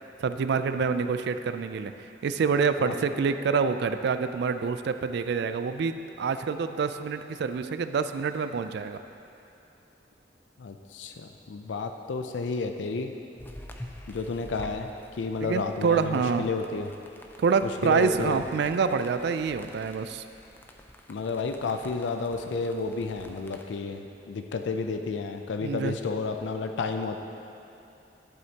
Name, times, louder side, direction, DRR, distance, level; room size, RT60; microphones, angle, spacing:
voice 1, 0.2-1.9 2.2-9.0 15.4-16.5 17.4-20.2 25.6-26.0, right 5 dB, 65° right, 10 dB, 0.3 m, -27 dB
voice 2, 10.6-13.1 14.1-16.9 17.6-18.4 21.1-27.2, left 4 dB, 85° left, 6 dB, 0.4 m, -31 dB
sound 1, 13.4-23.6, left 1 dB, 10° left, 0.5 m, -48 dB
11.5 x 7.6 x 2.8 m, 2.8 s
head